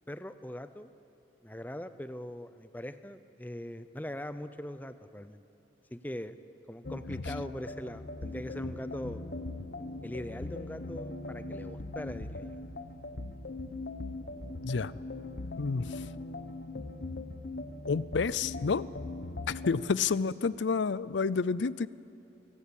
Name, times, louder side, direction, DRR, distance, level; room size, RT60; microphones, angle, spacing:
voice 1, 0.1-0.9 1.4-5.4 5.9-6.4 6.7-9.2 10.0-12.6, left 1 dB, 10° left, 12 dB, 0.6 m, -41 dB
sound 1, 6.8-19.9, left 2 dB, 60° left, 1.0 m, -40 dB
voice 2, 15.6-16.0 17.9-18.8 19.5-21.9, left 5 dB, 80° left, 19 dB, 0.5 m, -29 dB
24.0 x 16.0 x 8.5 m, 2.7 s
head